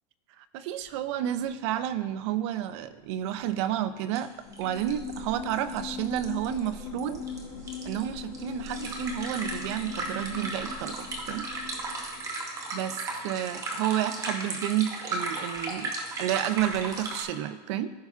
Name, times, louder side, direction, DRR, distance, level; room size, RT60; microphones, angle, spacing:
voice 1, 0.5-4.3 4.6-7.2 7.9-11.5 12.7-17.9, right 11 dB, 45° right, 12 dB, 0.4 m, -30 dB
sound 1, 1.4-1.5 1.7-1.8 3.6-3.7 4.1-4.2 4.5-17.2, right 2 dB, 15° right, 0.8 m, -36 dB
sound 2, 4.4-12.3, left 4 dB, 35° left, 2.2 m, -40 dB
15.0 x 5.5 x 2.4 m, 1.3 s
supercardioid pair, 165°, 21 cm